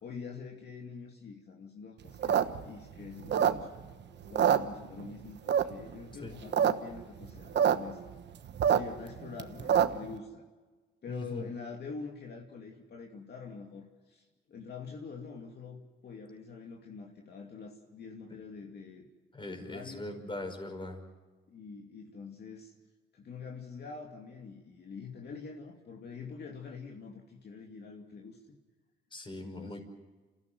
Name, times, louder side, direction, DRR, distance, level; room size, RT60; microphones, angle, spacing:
voice 1, 0.0-3.7 4.2-8.0 8.7-10.4 11.0-19.1 19.5-20.1 21.5-22.7 23.1-28.6 29.4-29.8, left 5 dB, 55° left, 1 dB, 2.7 m, -45 dB
sound 1, 2.1-3.9 4.2-5.1 5.5-5.9 6.3-6.7 7.0-7.1 7.2-7.7 8.1-10.1, right 9 dB, 60° right, 1.3 m, -26 dB
voice 2, 11.1-11.5 19.3-21.0 29.1-29.8, left 1 dB, 25° left, 5 dB, 5.3 m, -40 dB
28.5 x 15.5 x 7.9 m, 1.3 s
cardioid pair, 90°, 20 cm